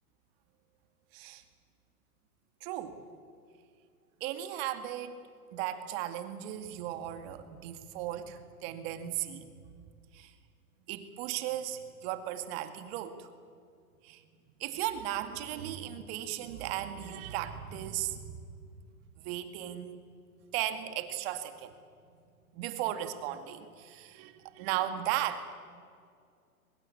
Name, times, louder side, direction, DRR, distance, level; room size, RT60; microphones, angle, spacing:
voice 1, 1.1-1.4 2.6-3.0 4.2-5.2 5.5-9.5 10.1-10.3 10.9-13.3 14.0-14.2 14.6-18.4 19.2-20.0 20.5-21.7 22.5-25.5, right 12 dB, 40° right, 8 dB, 2.2 m, -36 dB
24.0 x 20.5 x 8.5 m, 2.2 s
hypercardioid pair, 135°, 44 cm